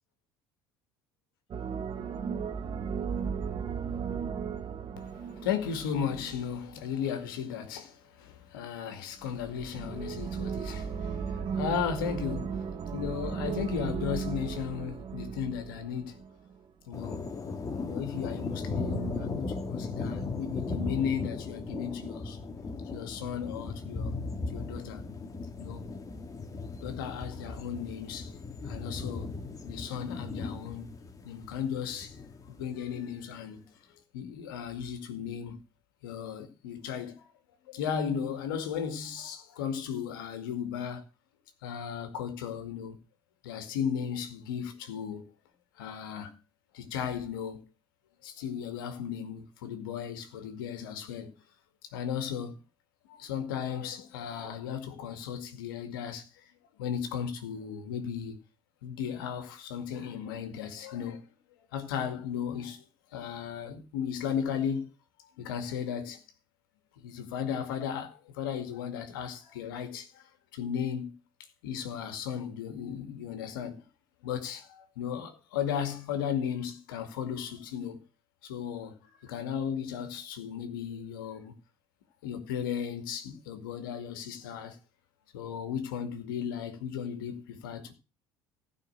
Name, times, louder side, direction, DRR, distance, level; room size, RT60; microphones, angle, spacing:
sound 1, 1.5-6.9 9.2-16.6 18.5-19.3, right 6 dB, 45° right, 1.6 m, -36 dB
voice 1, 5.3-16.2 16.9-17.4 17.8-22.4 22.8-24.2 24.5-25.1 25.6-25.9 26.8-28.4 28.6-29.3 29.7-30.9 31.2-32.2 32.5-33.7 34.1-35.6 36.0-37.2 37.7-41.0 41.6-43.0 43.4-45.3 45.8-46.4 46.7-47.6 48.2-51.4 51.9-52.6 53.1-56.3 56.8-58.4 58.8-61.3 61.7-62.8 63.1-64.9 65.4-66.2 67.0-70.2 70.5-71.1 71.6-73.8 74.2-78.0 78.4-81.5 82.2-84.8 85.3-87.9, left 8 dB, 80° left, 2.2 m, -35 dB
sound 2, 16.9-33.0, left 3 dB, 30° left, 2.2 m, -37 dB
15.5 x 5.7 x 6.5 m
hypercardioid pair, 65°, 11 cm